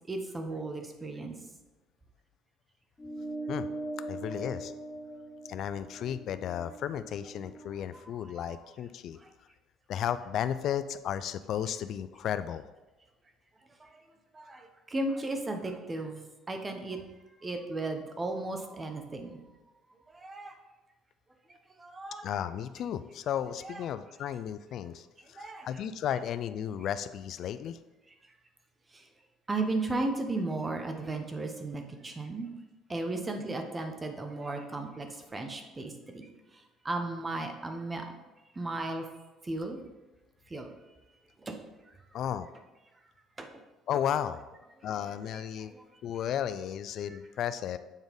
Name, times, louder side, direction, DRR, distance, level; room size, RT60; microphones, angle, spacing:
voice 1, 0.1-1.3 8.4-8.5 9.2-9.3 13.8-13.9 14.3-17.0 17.4-19.4 20.1-20.6 21.8-22.3 23.6-23.8 25.3-25.7 28.9-29.0 29.5-32.5 32.9-35.1 35.3-36.2 36.8-38.1 38.6-39.0 39.4-39.8 40.5-40.7 41.4-41.6 43.4-43.5 45.7-45.8 47.1-47.2, right 2 dB, 20° right, 5 dB, 0.8 m, -35 dB
sound 1, 3.0-7.8, right 2 dB, 15° left, 1.1 m, -41 dB
voice 2, 4.1-4.7 5.5-9.2 9.9-12.6 22.2-27.8 42.1-42.5 43.9-44.4 44.8-45.7 46.0-47.8, left 9 dB, 55° left, 13 dB, 0.3 m, -34 dB
7.2 x 4.0 x 5.1 m, 1.1 s
cardioid pair, 130°, 0 cm